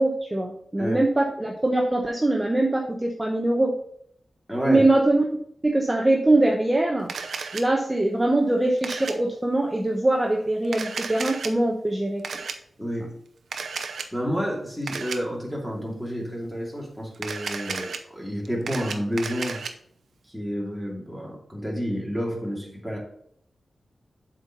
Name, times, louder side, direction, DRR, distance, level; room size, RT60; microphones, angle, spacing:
voice 1, 0.0-3.7 4.7-5.3 5.6-7.1 7.5-12.2, right 2 dB, 15° right, 0 dB, 1.0 m, -22 dB
voice 2, 4.5-4.8 12.8-13.1 14.1-19.6 20.3-23.0, equal, ahead, -2 dB, 2.7 m, -30 dB
Camera, 7.1-7.6 8.8-9.1 10.6-11.5 12.2-12.5 13.5-14.1 14.9-15.2 17.1-18.0 18.5-19.7, right 5 dB, 90° right, 0.7 m, -33 dB
7.5 x 4.6 x 5.5 m, 0.68 s
wide cardioid pair, 85°, 0 cm